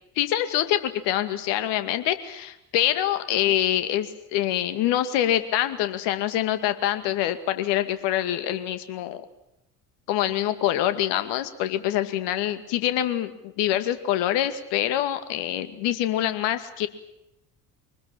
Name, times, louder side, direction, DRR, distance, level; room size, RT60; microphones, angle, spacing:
voice 1, 0.2-9.3 10.1-16.9, left 12 dB, 60° left, 10 dB, 2.3 m, -25 dB
24.5 x 20.0 x 8.8 m, 0.84 s
hypercardioid pair, 65°, 47 cm